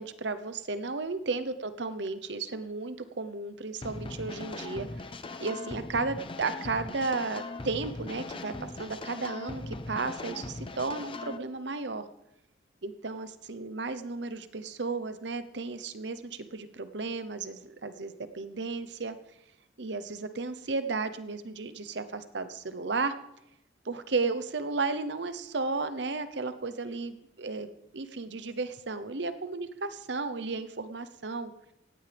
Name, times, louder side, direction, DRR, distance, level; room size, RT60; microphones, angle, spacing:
voice 1, 0.0-4.9 5.4-12.1 12.8-19.2 19.8-23.1 23.8-31.5, right 3 dB, 65° right, 11 dB, 0.9 m, -34 dB
sound 1, 3.8-11.4, left 2 dB, 30° left, 0.6 m, -40 dB
18.0 x 15.0 x 3.5 m, 0.86 s
head